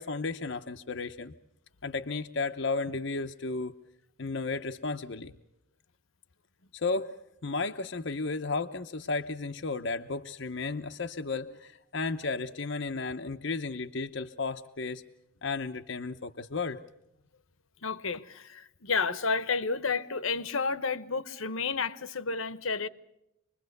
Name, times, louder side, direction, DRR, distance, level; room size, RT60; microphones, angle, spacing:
voice 1, 0.0-1.3 1.8-3.7 4.2-5.3 6.7-7.1 7.4-15.0 15.4-16.8, left 3 dB, 60° left, 0.8 m, -33 dB
voice 2, 17.8-22.9, left 4 dB, 75° left, 1.1 m, -31 dB
27.0 x 21.5 x 6.7 m
head